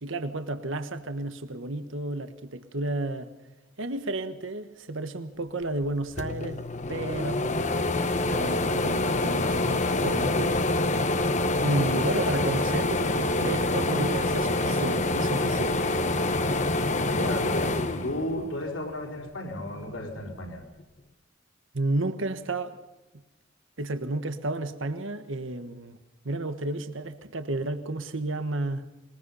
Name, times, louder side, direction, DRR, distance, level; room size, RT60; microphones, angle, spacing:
voice 1, 0.0-3.3 3.8-6.6 6.9-7.8 8.2-10.5 11.6-15.9 21.7-22.8 23.8-26.0 26.2-28.8, right 2 dB, 65° right, 1.3 m, -32 dB
sound 1, 5.8-5.9 6.2-18.8 19.2-20.3, left 2 dB, 35° left, 1.0 m, -26 dB
voice 2, 17.1-20.6, left 1 dB, 65° left, 4.3 m, -34 dB
22.0 x 21.0 x 5.6 m
head